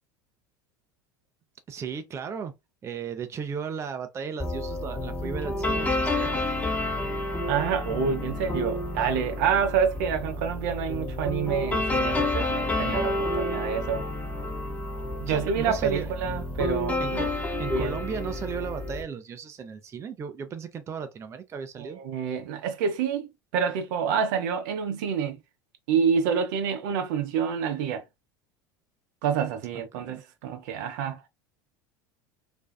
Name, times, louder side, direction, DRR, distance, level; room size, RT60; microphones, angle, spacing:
voice 1, 1.7-2.5 2.8-6.4 15.3-16.1 17.0-17.3 17.6-22.0 29.9-30.2, right 6 dB, 25° right, 0.4 m, -35 dB
sound 1, 4.4-19.0, left 2 dB, 15° left, 0.8 m, -30 dB
voice 2, 7.5-14.0 15.2-17.3 17.7-18.0 21.8-25.4 25.9-28.0 29.2-31.3, right 7 dB, 65° right, 0.6 m, -28 dB
2.5 x 2.3 x 2.2 m
hypercardioid pair, 80°, 11 cm